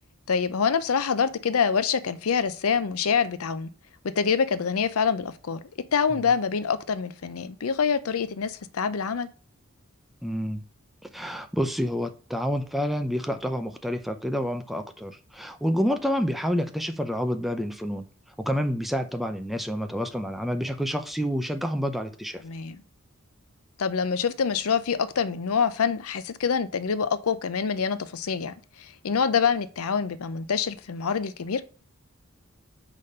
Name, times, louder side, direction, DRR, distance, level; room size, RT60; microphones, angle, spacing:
voice 1, 0.3-3.7 4.0-5.6 5.9-9.3 22.4-22.8 23.8-31.6, left 6 dB, 75° left, 0.6 m, -26 dB
voice 2, 10.2-10.6 11.1-18.1 18.4-22.4, equal, ahead, 0.6 m, -28 dB
5.1 x 4.1 x 5.4 m
head